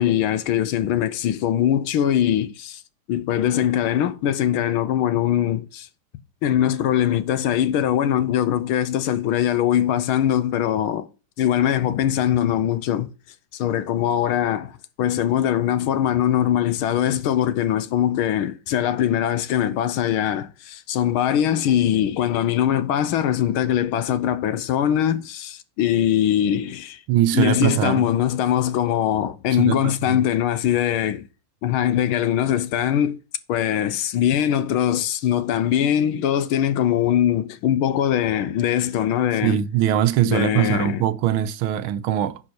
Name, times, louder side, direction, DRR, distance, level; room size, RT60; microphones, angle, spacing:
voice 1, 0.0-2.8 3.1-5.9 6.4-11.1 11.4-13.1 13.5-27.0 27.3-31.3 31.6-33.2 33.5-39.6 40.2-41.0, left 10 dB, 80° left, 1.6 m, -22 dB
voice 2, 27.1-28.0 29.5-30.2 39.4-42.4, right 12 dB, 80° right, 1.5 m, -22 dB
10.5 x 4.9 x 4.4 m
omnidirectional pair, 2.3 m